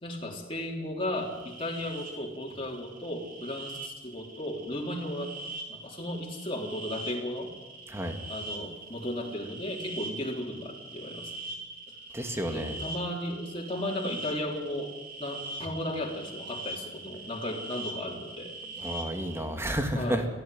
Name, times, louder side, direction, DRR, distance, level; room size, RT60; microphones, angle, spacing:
voice 1, 0.0-5.3 5.7-7.5 8.3-11.5 12.4-14.9 15.2-18.5 19.9-20.3, left 1 dB, 30° left, -1 dB, 3.7 m, -35 dB
sound 1, 1.2-19.4, right 2 dB, 45° right, 4.0 m, -42 dB
voice 2, 7.9-8.2 12.1-12.8 18.8-20.2, right 1 dB, 15° right, 5 dB, 2.3 m, -31 dB
22.5 x 15.5 x 9.3 m, 1.2 s
head